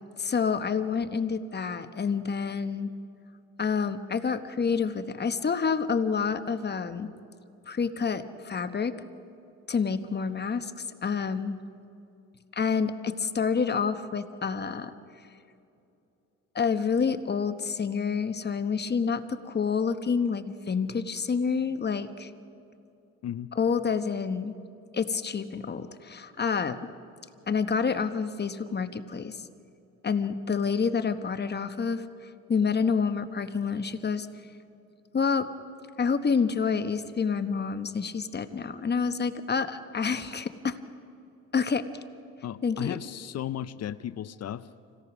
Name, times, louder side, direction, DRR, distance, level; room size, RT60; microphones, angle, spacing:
voice 1, 0.2-2.9 3.6-7.1 7.7-8.9 9.7-11.6 12.5-14.9 16.5-22.3 23.6-24.5 24.9-26.9 27.5-29.5 30.0-34.3 35.1-35.5 36.0-40.8 41.5-41.9 42.6-43.0, left 5 dB, 35° left, 10 dB, 1.0 m, -28 dB
voice 2, 42.4-44.7, left 11 dB, 55° left, 15 dB, 0.7 m, -35 dB
27.5 x 17.0 x 6.1 m, 2.7 s
cardioid pair, 90°, 30 cm